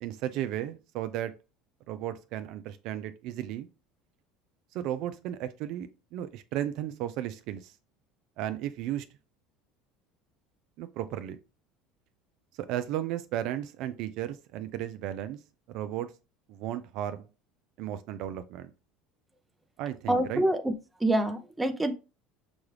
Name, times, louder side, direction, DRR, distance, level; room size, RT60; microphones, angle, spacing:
voice 1, 0.0-1.3 1.9-3.7 4.7-7.7 8.4-9.1 10.8-11.4 12.6-15.4 15.7-16.1 16.5-17.3 17.8-18.7 19.8-20.4, right 12 dB, 65° right, 0.4 m, -34 dB
voice 2, 20.1-20.7 21.0-21.9, right 1 dB, 10° right, 0.6 m, -26 dB
6.0 x 2.4 x 3.2 m
supercardioid pair, 110°, 0 cm